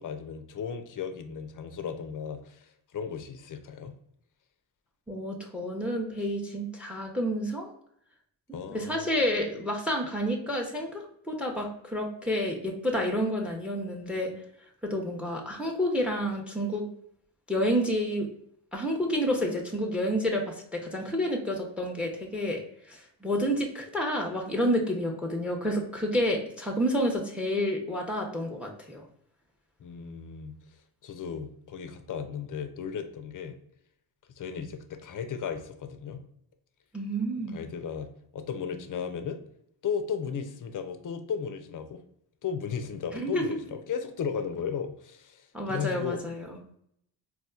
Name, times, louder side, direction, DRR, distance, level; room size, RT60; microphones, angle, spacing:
voice 1, 0.0-3.9 8.5-9.2 29.8-30.5 31.0-33.6 34.4-36.2 37.5-38.1 38.3-39.4 39.8-42.0 42.4-46.2, left 7 dB, 40° left, 8 dB, 0.6 m, -35 dB
voice 2, 5.1-7.7 8.7-14.3 14.8-16.8 17.5-18.3 18.7-29.0 36.9-37.6 43.1-43.4 45.5-46.6, equal, 5° right, 2 dB, 0.7 m, -29 dB
4.1 x 2.4 x 2.3 m, 0.71 s
supercardioid pair, 50°, 48 cm